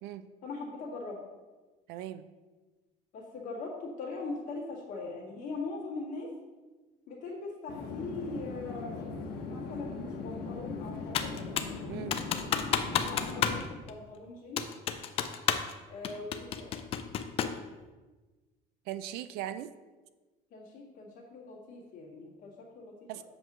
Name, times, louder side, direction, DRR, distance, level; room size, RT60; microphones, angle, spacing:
voice 1, 0.4-1.2 3.1-6.3 7.1-11.3 13.0-14.6 15.9-16.7 20.5-23.2, left 3 dB, 50° left, -3 dB, 1.8 m, -41 dB
voice 2, 1.9-2.3 11.9-12.2 18.9-19.7 23.1-23.2, right 12 dB, 75° right, 12 dB, 0.4 m, -39 dB
sound 1, 7.7-13.6, left 4 dB, 80° left, 1.0 m, -39 dB
Computer keyboard, 11.1-11.8 12.1-13.6 13.9-14.0 14.6-15.7 16.0-17.6, left 8 dB, 35° left, 0.4 m, -30 dB
7.7 x 3.0 x 6.0 m, 1.3 s
cardioid pair, 175°, 17 cm